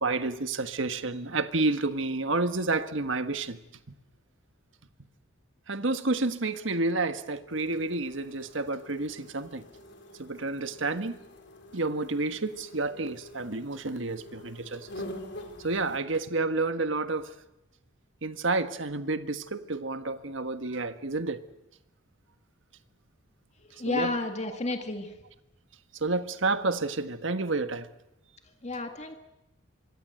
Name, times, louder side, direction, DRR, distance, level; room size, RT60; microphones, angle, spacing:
voice 1, 0.0-3.6 5.7-9.6 10.2-11.1 11.7-14.8 15.6-17.3 18.2-21.4 23.9-24.1 26.0-27.9, right 3 dB, 70° right, 1.5 m, -30 dB
sound 1, 7.5-16.0, left 1 dB, 55° left, 4.0 m, -46 dB
voice 2, 23.6-25.1 28.6-29.1, left 3 dB, 35° left, 1.9 m, -31 dB
26.5 x 23.5 x 7.8 m
head